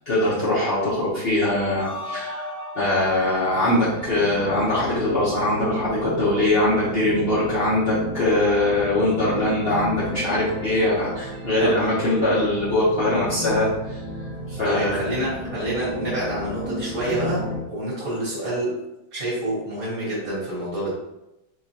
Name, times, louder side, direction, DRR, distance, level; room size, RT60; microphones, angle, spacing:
voice 1, 0.1-14.0 14.5-15.0, left 1 dB, 60° left, -8 dB, 0.6 m, -22 dB
sound 1, 1.8-4.9, left 2 dB, 85° left, 1.5 m, -37 dB
sound 2, 3.1-17.6, equal, 30° right, 0.6 m, -33 dB
voice 2, 14.6-18.7 19.1-20.9, right 1 dB, 50° right, -8 dB, 1.3 m, -27 dB
4.3 x 2.3 x 2.7 m, 0.91 s
omnidirectional pair, 2.2 m